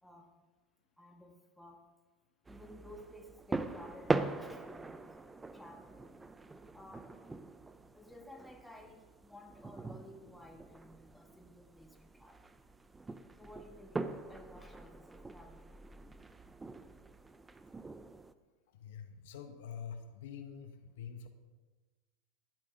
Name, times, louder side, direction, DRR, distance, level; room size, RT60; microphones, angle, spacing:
voice 1, 1.0-1.9 2.5-5.2 5.5-6.2 6.7-7.2 7.9-12.4 13.4-15.7, left 1 dB, 5° left, 3 dB, 1.5 m, -54 dB
sound 1, 2.5-18.3, right 3 dB, 15° right, 0.6 m, -42 dB
voice 2, 18.8-21.3, left 7 dB, 75° left, 7 dB, 1.1 m, -46 dB
12.5 x 11.5 x 3.9 m, 1.3 s
hypercardioid pair, 105°, 0 cm